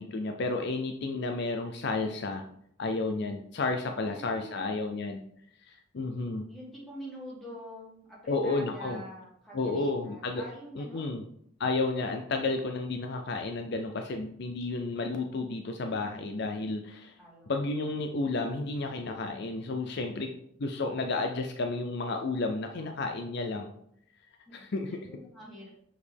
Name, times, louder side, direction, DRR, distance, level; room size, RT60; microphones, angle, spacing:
voice 1, 0.0-2.4 2.8-5.2 5.7-6.5 8.3-9.0 9.5-10.4 10.8-11.2 11.6-17.1 17.5-20.3 20.6-23.7 24.5-25.1, left 3 dB, 50° left, 5 dB, 0.4 m, -32 dB
voice 2, 3.9-4.7 6.2-11.1 17.2-17.7 24.5-24.6 24.9-25.7, equal, ahead, -7 dB, 2.4 m, -46 dB
6.4 x 5.0 x 3.4 m, 0.71 s
head